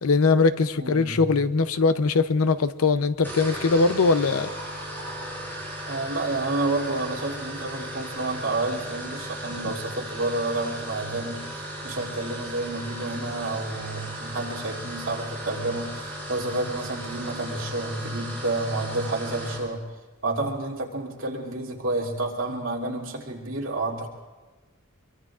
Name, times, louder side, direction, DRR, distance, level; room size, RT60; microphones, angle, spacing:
voice 1, 0.0-4.5, left 4 dB, 80° left, 13 dB, 0.6 m, -21 dB
voice 2, 0.8-1.3 5.9-11.4 11.8-15.9 16.3-19.8 20.2-24.1, right 2 dB, 65° right, -2 dB, 2.8 m, -29 dB
sound 1, 3.1-19.7, right 1 dB, 10° left, 6.3 m, -36 dB
25.0 x 23.0 x 2.4 m, 1.3 s
head